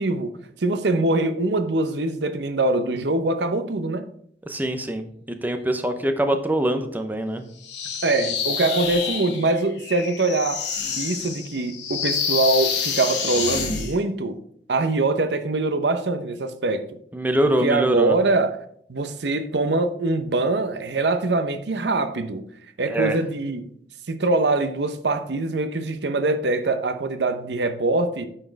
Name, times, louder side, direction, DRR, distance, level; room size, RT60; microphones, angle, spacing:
voice 1, 0.0-4.1 8.0-10.7 11.0-14.4 14.7-16.8 17.6-18.6 18.9-22.4 22.8-23.7 24.1-28.3, right 2 dB, 80° right, 0.8 m, -23 dB
voice 2, 4.5-7.5 17.1-18.1 22.9-23.2, right 1 dB, 10° right, 0.7 m, -24 dB
sound 1, 7.6-14.0, left 6 dB, 85° left, 1.5 m, -28 dB
8.9 x 4.4 x 4.6 m
head